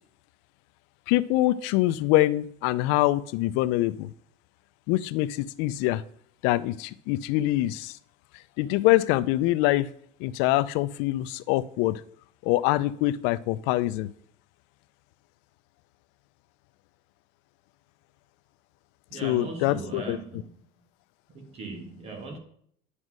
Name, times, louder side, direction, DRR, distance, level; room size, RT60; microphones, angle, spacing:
voice 1, 1.1-4.1 4.9-6.0 6.4-8.0 8.6-9.9 10.2-12.0 12.4-14.1 19.2-20.2, left 16 dB, 75° left, 15 dB, 0.5 m, -24 dB
voice 2, 19.1-20.5 21.3-22.4, right 3 dB, 35° right, 5 dB, 1.8 m, -38 dB
9.8 x 5.3 x 6.2 m, 0.65 s
cardioid pair, 180°, 19 cm